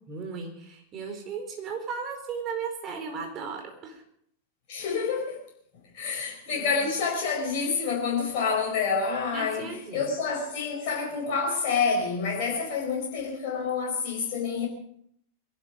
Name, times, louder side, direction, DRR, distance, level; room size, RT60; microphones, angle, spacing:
voice 1, 0.1-4.0 6.0-6.8 9.3-10.1, right 5 dB, 30° right, 4.6 m, -36 dB
voice 2, 4.7-5.4 5.9-14.7, left 5 dB, 45° left, 4.8 m, -28 dB
22.5 x 12.0 x 5.3 m
figure-of-eight pair, 90°, 0 cm